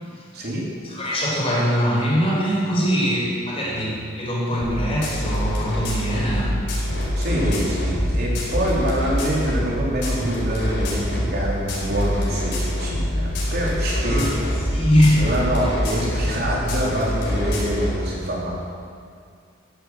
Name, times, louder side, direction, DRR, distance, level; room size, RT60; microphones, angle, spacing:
voice 1, 0.3-0.6 7.2-14.4 15.2-18.5, equal, 50° right, -4 dB, 3.8 m, -25 dB
voice 2, 0.8-6.5 14.0-14.3 14.6-15.2 15.6-15.7, equal, 30° left, -5 dB, 4.8 m, -22 dB
sound 1, 4.6-17.9, equal, 60° left, 4.9 m, -25 dB
14.5 x 9.6 x 7.8 m, 2.3 s
head